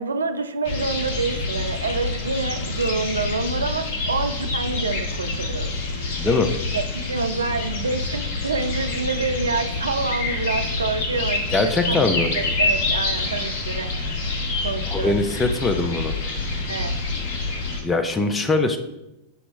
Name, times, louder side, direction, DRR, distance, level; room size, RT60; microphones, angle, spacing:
voice 1, 0.0-6.2 6.7-12.0 12.3-14.1 14.6-15.2 16.7-17.0, right 4 dB, 70° right, 8 dB, 0.4 m, -27 dB
sound 1, 0.6-17.8, left 3 dB, 50° left, 0.8 m, -27 dB
voice 2, 6.2-6.5 11.5-12.3 14.9-16.1 17.8-18.8, left 3 dB, 15° left, 8 dB, 0.4 m, -22 dB
5.7 x 3.0 x 3.1 m, 0.90 s
figure-of-eight pair, 90°, 0 cm